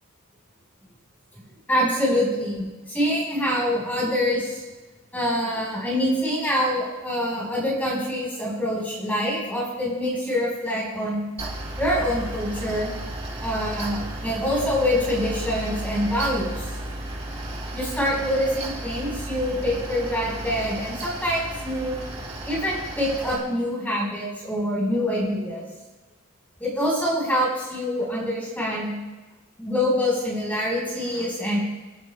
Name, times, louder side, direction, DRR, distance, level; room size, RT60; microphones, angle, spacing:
voice 1, 1.7-4.6 5.1-11.2 11.8-12.9 13.4-16.7 17.7-22.0 22.4-25.7 26.6-28.9 29.6-31.6, equal, 10° left, -5 dB, 4.3 m, -25 dB
Mechanical fan, 11.4-23.4, right 1 dB, 25° right, 1.8 m, -34 dB
25.0 x 8.9 x 2.2 m, 1.2 s
head